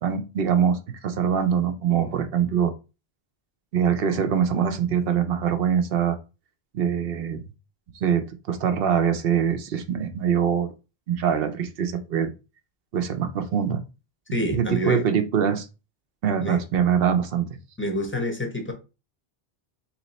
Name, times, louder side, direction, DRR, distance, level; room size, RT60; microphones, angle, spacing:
voice 1, 0.0-2.7 3.7-6.2 6.7-7.4 8.0-10.7 11.1-12.3 12.9-13.8 14.5-15.7 16.2-17.6, right 8 dB, 70° right, 0.8 m, -23 dB
voice 2, 14.3-15.1 16.4-16.6 17.8-18.7, left 1 dB, 15° left, 0.7 m, -27 dB
3.1 x 3.0 x 4.0 m
omnidirectional pair, 1.1 m